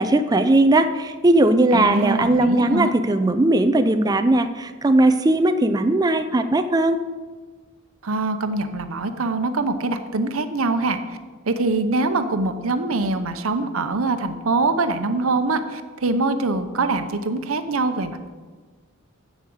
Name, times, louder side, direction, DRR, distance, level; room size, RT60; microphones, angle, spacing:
voice 1, 0.0-7.0, right 2 dB, 20° right, 9 dB, 0.4 m, -18 dB
voice 2, 1.7-3.0 8.0-11.0 11.5-18.3, right 3 dB, 85° right, 9 dB, 0.8 m, -23 dB
7.4 x 7.1 x 7.8 m, 1.4 s
head